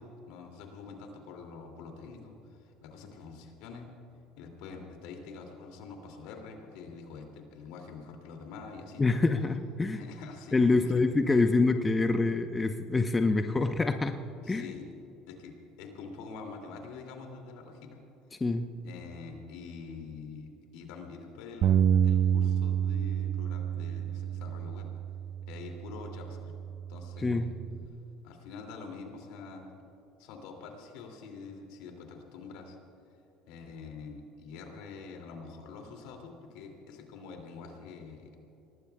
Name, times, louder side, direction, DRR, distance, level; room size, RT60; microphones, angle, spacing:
voice 1, 0.0-3.9 4.4-9.2 9.9-10.9 14.4-14.9 15.3-18.0 18.8-21.8 22.0-24.9 25.5-26.5 26.9-27.5 28.2-29.7 30.2-32.8 33.5-38.4, left 4 dB, 75° left, 2 dB, 2.5 m, -45 dB
voice 2, 9.0-10.0 10.5-14.2 14.5-14.6 18.4-18.7 27.2-27.5, left 3 dB, 20° left, 7 dB, 0.8 m, -26 dB
Bass guitar, 21.6-27.9, right 9 dB, 55° right, 0.4 m, -29 dB
24.0 x 19.0 x 2.3 m, 2.9 s
hypercardioid pair, 75°, 0 cm